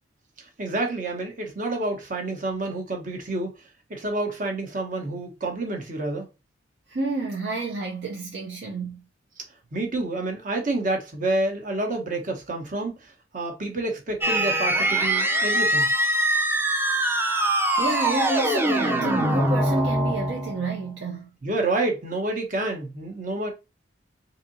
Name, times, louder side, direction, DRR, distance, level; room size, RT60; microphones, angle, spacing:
voice 1, 0.6-3.5 3.9-6.3 9.7-15.9 21.4-23.5, right 2 dB, 45° right, 1.1 m, -28 dB
voice 2, 6.9-9.0 17.3-17.5 17.8-21.3, right 3 dB, 65° right, 0.7 m, -30 dB
sound 1, 14.2-20.7, right 1 dB, 10° right, 0.5 m, -23 dB
4.0 x 2.8 x 2.7 m
head